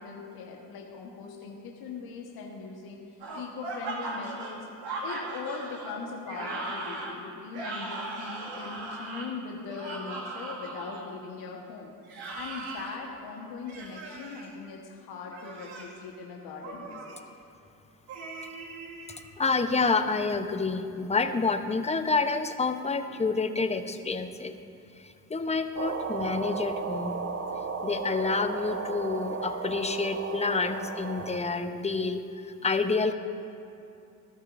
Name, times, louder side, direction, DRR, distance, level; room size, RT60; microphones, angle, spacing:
voice 1, 0.0-4.7 5.0-11.9 12.3-17.2, left 5 dB, 65° left, -1 dB, 1.5 m, -40 dB
sound 1, 3.2-11.0 12.0-13.0 13.7-14.4 15.2-16.0 16.6-17.2 18.1-19.2, right 2 dB, 65° right, 2.3 m, -38 dB
voice 2, 19.4-24.6 25.0-27.2 27.8-33.1, left 4 dB, 15° left, 8 dB, 0.9 m, -28 dB
sound 2, 25.7-31.4, right 5 dB, 35° right, 1.2 m, -34 dB
19.5 x 13.0 x 2.7 m, 2.6 s
hypercardioid pair, 55°, 41 cm